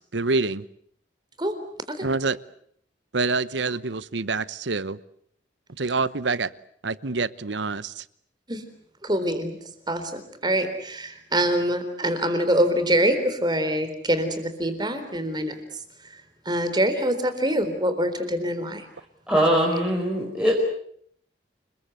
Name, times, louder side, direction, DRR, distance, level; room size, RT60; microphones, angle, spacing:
voice 1, 0.1-0.6 2.0-2.4 3.1-5.0 5.8-6.5 6.8-7.8, right 3 dB, 70° right, 17 dB, 1.0 m, -26 dB
voice 2, 9.0-9.6 9.9-15.6 16.5-18.9, right 1 dB, 25° right, 9 dB, 3.9 m, -24 dB
voice 3, 19.3-20.6, equal, 5° right, -2 dB, 5.2 m, -21 dB
29.5 x 22.0 x 8.1 m, 0.66 s
head